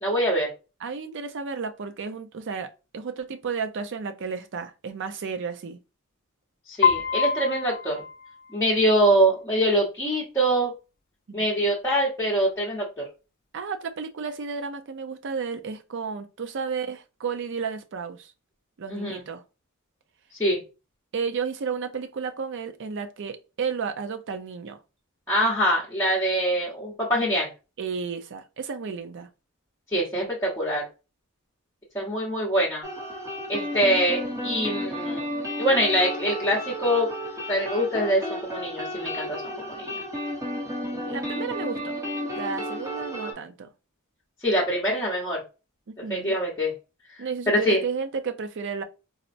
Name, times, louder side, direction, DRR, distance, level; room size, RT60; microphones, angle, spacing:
voice 1, 0.0-0.5 6.7-8.0 8.5-10.7 11.3-13.0 18.9-19.2 20.4-20.6 25.3-27.5 29.9-30.9 31.9-32.8 33.5-35.2 35.6-37.1 37.5-40.0 44.4-45.4 46.1-46.7 47.5-47.8, right 1 dB, 15° left, 0.9 m, -24 dB
voice 2, 0.8-5.8 11.3-11.5 13.5-18.3 18.8-19.4 21.1-24.8 27.8-29.3 40.9-42.0 42.4-43.7 45.9-46.4 47.2-48.8, right 5 dB, 55° right, 0.5 m, -32 dB
Piano, 6.8-8.9, left 6 dB, 40° left, 0.3 m, -26 dB
sound 1, 32.8-43.3, equal, 15° right, 0.8 m, -32 dB
4.1 x 2.1 x 2.5 m
head